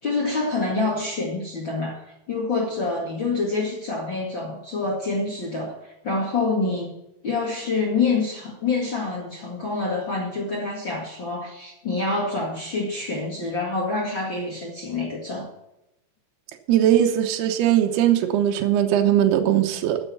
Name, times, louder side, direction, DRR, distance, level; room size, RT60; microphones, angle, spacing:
voice 1, 0.0-5.8 6.0-7.0 7.2-15.5, left 3 dB, 40° left, -2 dB, 2.0 m, -26 dB
voice 2, 16.7-20.0, right 11 dB, 75° right, 4 dB, 2.9 m, -20 dB
12.5 x 7.2 x 7.1 m, 0.89 s
omnidirectional pair, 4.8 m